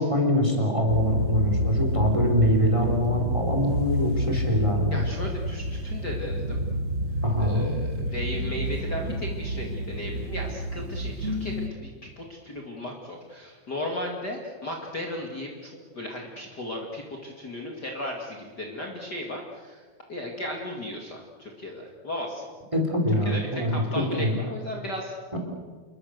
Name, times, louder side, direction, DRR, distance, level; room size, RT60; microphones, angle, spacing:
voice 1, 0.0-5.0 7.2-7.7 22.7-24.4 25.3-25.4, equal, 10° right, 3 dB, 3.8 m, -24 dB
sound 1, 0.9-11.7, equal, 35° right, 1.4 m, -29 dB
voice 2, 4.9-6.6 7.4-22.5 23.2-25.4, left 1 dB, 35° left, 0 dB, 2.6 m, -36 dB
28.0 x 22.0 x 6.6 m, 1.5 s
omnidirectional pair, 3.5 m